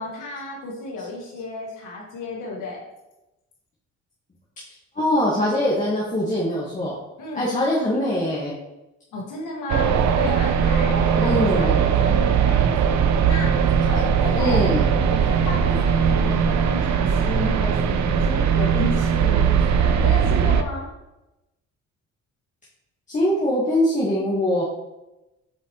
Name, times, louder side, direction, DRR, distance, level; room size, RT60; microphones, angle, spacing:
voice 1, 0.0-2.8 7.2-7.4 9.1-13.0 13.2-14.6 15.1-20.9, left 2 dB, 90° left, -2 dB, 1.7 m, -32 dB
voice 2, 4.9-7.0 7.3-8.5 11.2-11.8 14.3-14.8 23.1-24.6, left 1 dB, 25° left, -6 dB, 1.4 m, -22 dB
sound 1, 9.7-20.6, right 7 dB, 70° right, 0.6 m, -20 dB
7.8 x 4.4 x 2.9 m, 0.97 s
cardioid pair, 90°, 30 cm